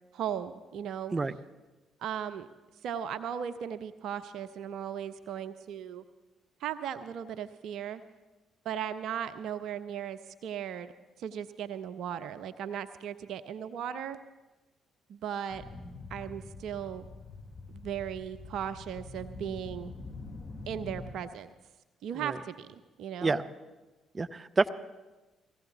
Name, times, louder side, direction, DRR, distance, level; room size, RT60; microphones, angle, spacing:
voice 1, 0.1-1.2 2.0-2.5 2.8-6.0 6.6-8.0 8.6-10.9 11.2-14.2 15.1-15.7 16.1-17.1 17.7-19.9 20.7-21.5 22.0-23.4, right 9 dB, 65° right, 11 dB, 0.6 m, -37 dB
sound 1, 15.5-21.1, left 3 dB, 25° left, 2.4 m, -45 dB
voice 2, 24.1-24.7, right 3 dB, 30° right, 12 dB, 0.7 m, -28 dB
19.5 x 15.5 x 4.0 m, 1.1 s
hypercardioid pair, 45°, 0 cm